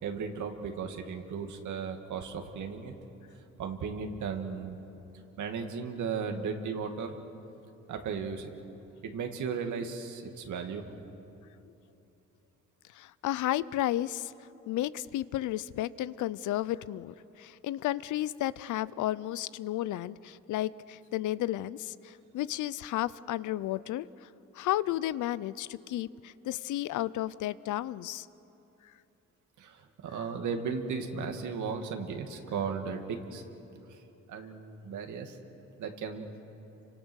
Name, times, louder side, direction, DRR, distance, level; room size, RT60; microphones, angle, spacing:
voice 1, 0.0-2.9 3.6-4.8 5.4-7.2 7.9-8.5 9.0-10.9 29.6-33.4 33.9-34.0 34.3-35.4 35.8-36.3, right 5 dB, 75° right, 4 dB, 2.4 m, -36 dB
voice 2, 13.0-14.3 14.7-24.1 24.6-28.3, left 14 dB, 80° left, 18 dB, 0.7 m, -33 dB
29.0 x 25.0 x 6.4 m, 2.9 s
cardioid pair, 90°, 30 cm